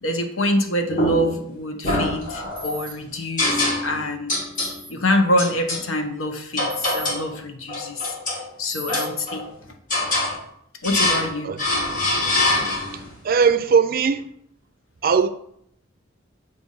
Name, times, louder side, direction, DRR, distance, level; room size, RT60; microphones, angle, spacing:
voice 1, 0.0-4.3 4.9-8.0 8.6-9.5 10.8-11.5, left 1 dB, 85° left, 1.0 m, -25 dB
sound 1, 0.9-1.4 1.8-2.7 3.4-4.0 4.3-4.8 5.4-5.8 6.6-7.3 7.7-8.4 8.9-9.5 9.9-10.4 10.8-11.3 11.6-13.0, left 2 dB, 45° left, 1.6 m, -24 dB
sound 2, 2.6-2.9 4.5-4.9 6.7-7.1 8.7-9.1, right 2 dB, 10° left, 0.9 m, -36 dB
voice 2, 13.2-14.3 15.0-15.3, right 6 dB, 45° right, 0.4 m, -18 dB
7.8 x 2.6 x 5.5 m
head